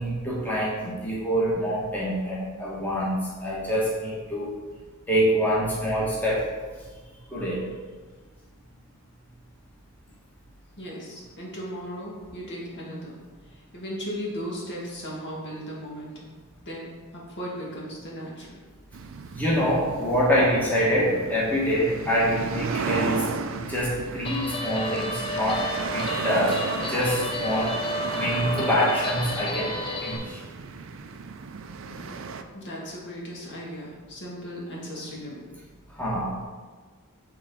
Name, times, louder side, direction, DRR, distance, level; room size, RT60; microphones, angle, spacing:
voice 1, 0.0-4.5 5.1-6.5 7.3-7.6 19.3-27.8 28.2-30.4 36.0-36.3, equal, 10° left, -7 dB, 1.3 m, -25 dB
voice 2, 10.8-13.2 13.5-16.3 16.6-18.6 31.9-32.2 32.5-35.4, equal, 55° left, -4 dB, 1.7 m, -37 dB
sound 1, 18.9-32.4, right 5 dB, 60° right, 0.4 m, -34 dB
Guitar, 24.2-30.2, left 2 dB, 25° left, 0.6 m, -32 dB
8.3 x 3.8 x 3.7 m, 1.4 s
head